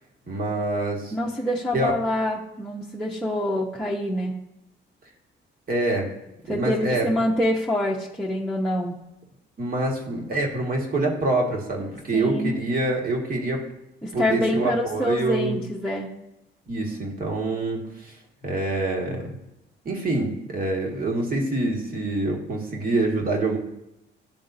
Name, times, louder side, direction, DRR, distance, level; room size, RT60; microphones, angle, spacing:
voice 1, 0.3-1.1 1.7-1.9 5.7-6.1 6.5-7.1 9.6-13.6 14.1-15.6 16.7-18.2 18.4-19.3 19.9-23.6, right 2 dB, 45° right, -1 dB, 1.8 m, -26 dB
voice 2, 1.1-4.3 6.5-9.0 12.1-12.5 14.0-16.1, left 1 dB, 5° left, -6 dB, 0.9 m, -26 dB
11.0 x 3.6 x 2.7 m, 0.89 s
cardioid pair, 90°, 20 cm